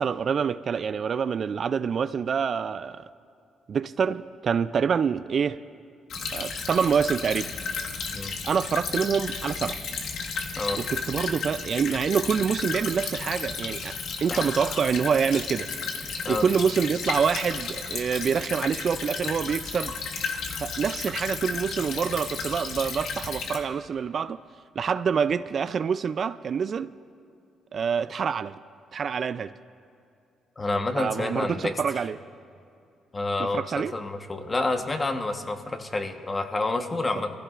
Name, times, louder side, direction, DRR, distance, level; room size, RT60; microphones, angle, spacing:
voice 1, 0.0-3.0 3.7-5.6 6.3-7.5 8.4-9.8 10.7-15.7 16.3-19.9 20.6-24.4 24.8-26.9 27.7-28.5 28.9-29.5 31.0-32.2 33.4-33.9, right 6 dB, 50° right, 0.3 m, -26 dB
Stream / Trickle dribble, 6.1-23.6, left 5 dB, 75° left, 1.4 m, -33 dB
voice 2, 30.6-31.8 33.1-37.3, left 2 dB, 25° left, 1.1 m, -29 dB
23.5 x 15.0 x 2.5 m
cardioid pair, 90°, 0 cm